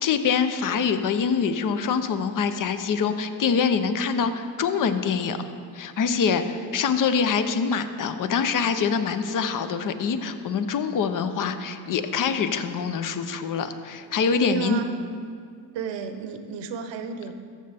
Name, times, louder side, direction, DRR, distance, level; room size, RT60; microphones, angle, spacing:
voice 1, 0.0-5.5 5.7-14.8, left 6 dB, 40° left, 10 dB, 0.7 m, -25 dB
voice 2, 14.4-14.9 15.7-17.3, right 6 dB, 65° right, 8 dB, 0.9 m, -31 dB
14.0 x 6.7 x 3.4 m, 2.2 s
supercardioid pair, 85°, 47 cm